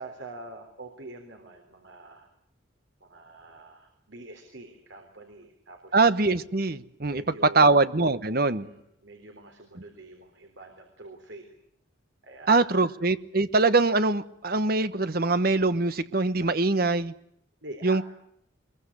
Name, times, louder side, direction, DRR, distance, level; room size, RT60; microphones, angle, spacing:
voice 1, 0.0-2.3 3.0-6.0 7.1-7.8 8.4-11.5 12.2-12.9 17.6-18.1, right 2 dB, 70° right, 3.7 m, -45 dB
voice 2, 5.9-8.7 12.5-17.1 17.8-18.1, right 3 dB, 50° right, 1.1 m, -23 dB
23.5 x 22.0 x 9.8 m
head